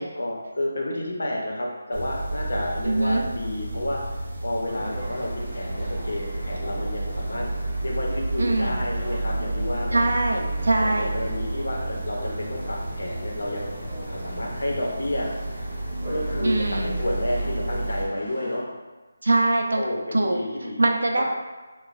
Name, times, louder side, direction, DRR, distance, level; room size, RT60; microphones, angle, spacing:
voice 1, 0.1-7.5 7.8-10.1 10.7-13.7 14.0-15.3 16.1-18.7 19.7-20.8 21.2-21.3, left 1 dB, 80° left, -2 dB, 0.8 m, -30 dB
sound 1, 1.9-18.1, right 2 dB, 50° right, 0.9 m, -31 dB
voice 2, 2.8-3.2 8.4-8.8 9.9-11.1 16.4-16.9 19.2-19.8 20.1-20.4 20.8-21.2, right 2 dB, 85° right, 2 dB, 0.4 m, -22 dB
sound 2, 4.7-18.6, equal, 10° right, 0.7 m, -41 dB
3.1 x 2.2 x 2.5 m, 1.3 s
figure-of-eight pair, 180°, 0 cm